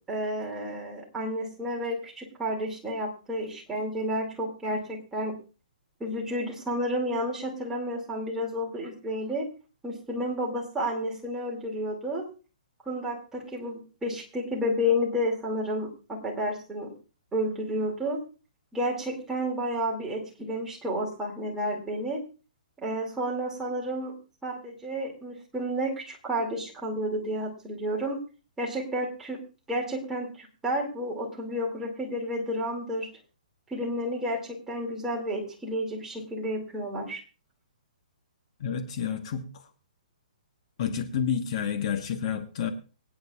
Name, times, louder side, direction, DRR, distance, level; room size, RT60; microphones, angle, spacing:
voice 1, 0.1-5.3 6.0-9.5 9.8-12.2 12.9-16.9 17.3-18.2 18.7-22.2 22.8-24.1 24.4-28.2 28.6-29.4 29.7-33.1 33.7-37.2, equal, 10° right, -2 dB, 2.3 m, -31 dB
voice 2, 38.6-39.4 40.8-42.7, left 7 dB, 45° left, 7 dB, 1.1 m, -29 dB
24.5 x 9.2 x 2.3 m, 0.34 s
hypercardioid pair, 155°, 5 cm